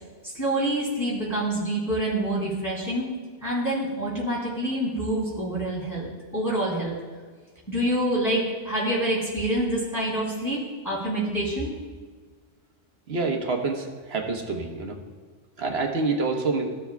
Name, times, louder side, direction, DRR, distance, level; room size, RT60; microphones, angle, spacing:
voice 1, 0.3-3.1 3.4-6.9 7.7-10.6 10.8-11.7, right 1 dB, 15° left, -7 dB, 2.8 m, -26 dB
voice 2, 13.1-15.0 15.6-16.7, right 3 dB, 55° right, 2 dB, 1.3 m, -27 dB
15.0 x 7.0 x 2.3 m, 1.4 s
omnidirectional pair, 1.3 m